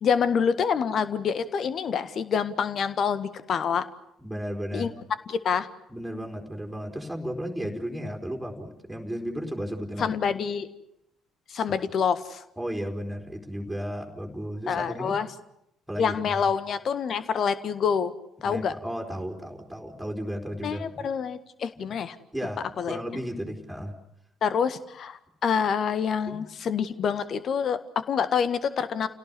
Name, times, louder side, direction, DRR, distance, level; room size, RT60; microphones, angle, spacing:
voice 1, 0.0-3.9 4.7-4.9 5.3-5.7 10.0-10.7 11.5-12.4 14.7-15.3 16.0-18.1 18.4-18.7 20.6-22.2 22.8-23.0 24.4-29.1, left 7 dB, 45° left, 14 dB, 1.6 m, -26 dB
voice 2, 4.2-4.9 5.9-10.2 11.5-11.6 12.6-15.2 15.9-16.4 18.4-21.1 21.8-21.9 22.3-23.9 26.3-26.4, equal, 5° right, 1 dB, 4.2 m, -34 dB
29.5 x 17.5 x 9.8 m, 0.79 s
figure-of-eight pair, 50°, 0 cm